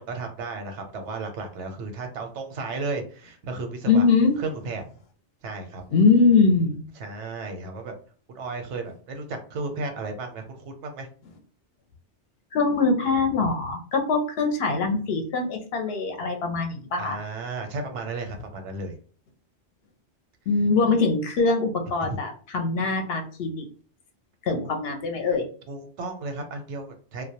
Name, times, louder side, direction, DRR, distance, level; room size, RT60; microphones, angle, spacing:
voice 1, 0.0-4.1 4.4-4.8 5.4-5.8 7.0-7.9 8.3-11.1 17.0-18.9 22.0-22.1 25.7-27.2, right 3 dB, 85° right, 5 dB, 0.9 m, -34 dB
voice 2, 3.9-4.3 5.9-6.8 12.5-17.2 20.5-23.7 24.5-25.5, left 4 dB, 65° left, 4 dB, 0.7 m, -22 dB
2.2 x 2.1 x 2.7 m, 0.42 s
omnidirectional pair, 1.2 m